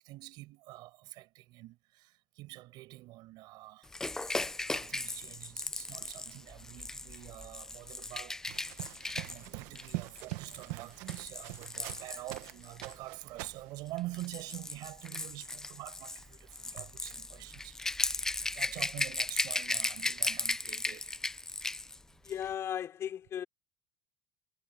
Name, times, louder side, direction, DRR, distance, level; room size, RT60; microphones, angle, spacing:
voice 1, 0.0-3.9 4.6-8.4 8.8-21.2, right 18 dB, 45° right, 5.4 m, -46 dB
Rattle / Rattle (instrument), 3.9-12.9 13.9-22.0 22.3-22.4, left 2 dB, 5° left, 0.4 m, -37 dB
sound 1, 8.5-12.5 12.8-13.7, right 20 dB, 65° right, 1.1 m, -43 dB
voice 2, 22.2-23.4, left 9 dB, 25° left, 3.7 m, -36 dB
cardioid pair, 180°, 10 cm